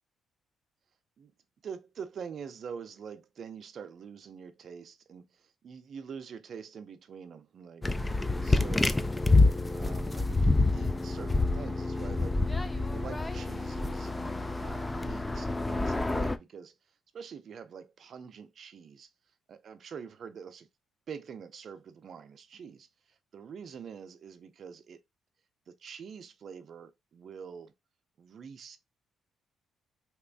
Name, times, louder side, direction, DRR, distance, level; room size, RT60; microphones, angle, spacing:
voice 1, 1.6-5.2 5.6-7.9 8.4-9.0 9.7-16.7 17.1-19.1 19.5-20.7 21.1-22.9 23.3-25.0 25.7-27.7 28.2-28.8, right 6 dB, 55° right, 0.5 m, -45 dB
sound 1, 7.8-16.4, left 2 dB, 15° left, 0.3 m, -27 dB
2.9 x 2.4 x 3.4 m
cardioid pair, 90°, 0 cm